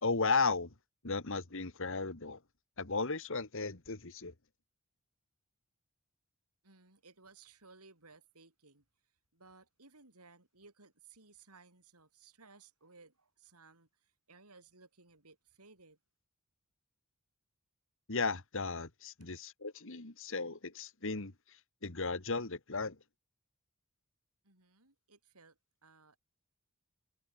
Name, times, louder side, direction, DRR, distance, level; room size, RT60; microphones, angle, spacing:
voice 1, 0.0-0.7 1.0-2.4 2.8-4.3 18.1-21.3 21.8-23.0, left 4 dB, 60° left, 1.9 m, -35 dB
voice 2, 6.6-8.9 9.3-16.0 19.2-19.3 24.4-26.2, right 4 dB, 85° right, 7.0 m, -60 dB
head